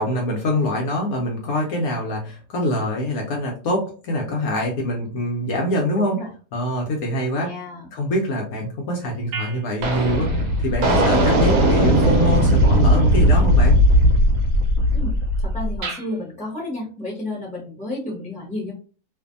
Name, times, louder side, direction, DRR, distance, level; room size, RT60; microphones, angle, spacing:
voice 1, 0.0-6.2 6.5-7.5 7.9-13.8, equal, 70° left, 0 dB, 1.0 m, -24 dB
voice 2, 6.0-6.3 7.4-7.9 14.9-18.7, left 2 dB, 5° left, -4 dB, 0.8 m, -32 dB
sound 1, 9.3-9.5 9.8-16.0, equal, 70° right, 1.0 m, -17 dB
2.6 x 2.6 x 2.4 m, 0.38 s
omnidirectional pair, 1.8 m